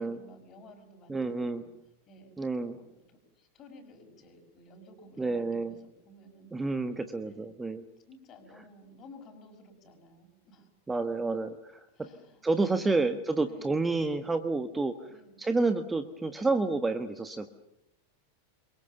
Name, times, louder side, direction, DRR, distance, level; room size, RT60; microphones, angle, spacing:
voice 1, 0.0-1.7 2.1-2.3 2.7-5.8 6.0-6.5 7.2-7.4 8.1-10.7 11.9-12.4 13.4-13.8 15.1-15.4, left 1 dB, 30° left, 6 dB, 6.1 m, -54 dB
voice 2, 1.1-1.6 2.4-2.8 5.2-5.8 6.5-7.8 8.6-8.7 10.9-11.9 12.4-15.1 15.4-17.5, right 3 dB, 10° right, 10 dB, 1.3 m, -29 dB
28.0 x 23.0 x 7.0 m, 0.81 s
figure-of-eight pair, 90°, 0 cm